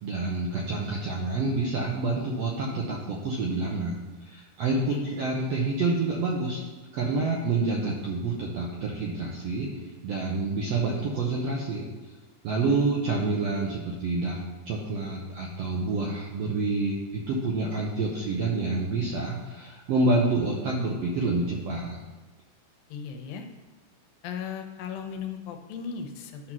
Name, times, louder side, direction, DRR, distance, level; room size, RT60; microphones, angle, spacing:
voice 1, 0.0-6.6 6.9-9.7 10.0-11.9 12.4-22.0, right 3 dB, 75° right, -2 dB, 1.4 m, -28 dB
voice 2, 4.9-5.3 12.7-13.0 22.9-23.5 24.2-26.5, left 6 dB, 85° left, 5 dB, 2.5 m, -37 dB
10.5 x 3.8 x 6.0 m, 1.3 s
omnidirectional pair, 4.0 m